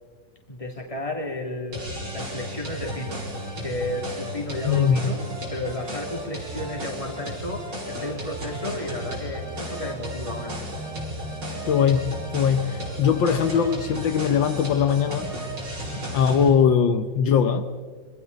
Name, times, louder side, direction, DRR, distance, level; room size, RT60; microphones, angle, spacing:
voice 1, 0.5-3.3 3.6-5.2 5.5-10.7, left 1 dB, 15° left, 1 dB, 2.8 m, -33 dB
sound 1, 1.7-16.5, equal, 65° right, 5.4 m, -34 dB
voice 2, 4.7-5.0 11.7-15.3 16.1-17.6, left 7 dB, 75° left, 9 dB, 1.6 m, -21 dB
27.0 x 25.0 x 4.1 m, 1.5 s
omnidirectional pair, 2.1 m